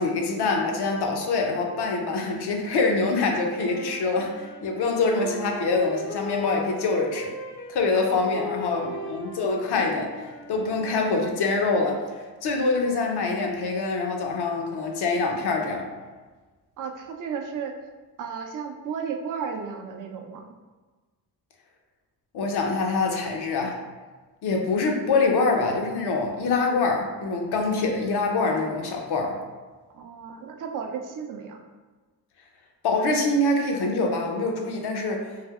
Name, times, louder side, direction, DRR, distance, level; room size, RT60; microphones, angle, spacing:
voice 1, 0.0-7.3 7.7-10.1 10.5-12.0 12.4-15.9 22.3-23.8 24.4-29.4 32.8-35.3, left 3 dB, 60° left, 2 dB, 0.7 m, -25 dB
Wind instrument woodwind instrument, 3.5-11.5, left 2 dB, 30° left, 0.6 m, -38 dB
voice 2, 7.9-8.6 16.8-17.7 18.2-20.5 29.9-31.6, right 6 dB, 45° right, 4 dB, 0.5 m, -34 dB
3.3 x 2.6 x 2.4 m, 1.3 s
supercardioid pair, 60°, 44 cm